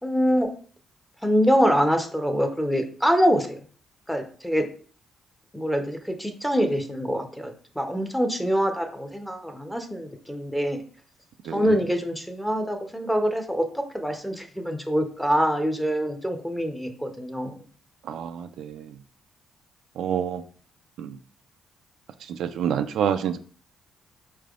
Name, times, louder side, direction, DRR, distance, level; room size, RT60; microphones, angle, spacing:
voice 1, 0.0-0.5 1.2-3.6 4.1-4.7 5.5-10.8 11.5-17.5, equal, 5° left, 5 dB, 0.8 m, -25 dB
voice 2, 11.5-11.8 18.1-18.9 20.0-20.4 21.0-21.2 22.3-23.4, right 8 dB, 75° right, 8 dB, 0.3 m, -28 dB
4.5 x 3.3 x 2.4 m, 0.43 s
cardioid pair, 90°, 0 cm